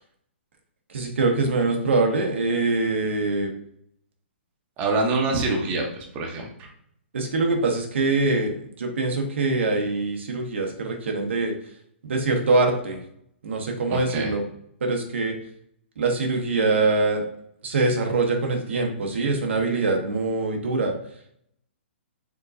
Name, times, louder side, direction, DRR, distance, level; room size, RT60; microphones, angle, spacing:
voice 1, 0.9-3.5 5.3-5.4 7.1-11.5 12.0-13.0 13.4-14.4 14.8-15.3 16.0-17.2 17.6-20.9, right 3 dB, 75° right, 2 dB, 0.9 m, -24 dB
voice 2, 4.8-6.5 13.9-14.3, right 3 dB, 25° right, -1 dB, 1.0 m, -25 dB
4.7 x 3.8 x 2.6 m, 0.69 s
hypercardioid pair, 145°, 7 cm